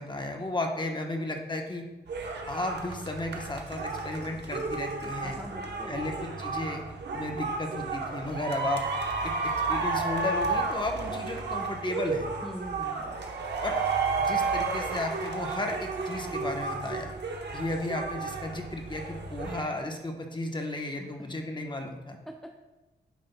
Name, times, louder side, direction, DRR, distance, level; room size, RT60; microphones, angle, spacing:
voice 1, 0.0-1.8 2.5-5.4 5.9-6.8 7.1-8.8 9.4-12.3 13.6-13.8 14.2-17.1 17.5-22.2, left 2 dB, 25° left, 2 dB, 1.0 m, -34 dB
sound 1, 2.1-19.6, right 4 dB, 70° right, 0.9 m, -32 dB
voice 2, 5.2-6.0 12.4-13.2 20.7-21.3 22.3-22.5, equal, ahead, 3 dB, 0.5 m, -43 dB
9.4 x 5.3 x 2.2 m, 1.1 s
cardioid pair, 75°, 19 cm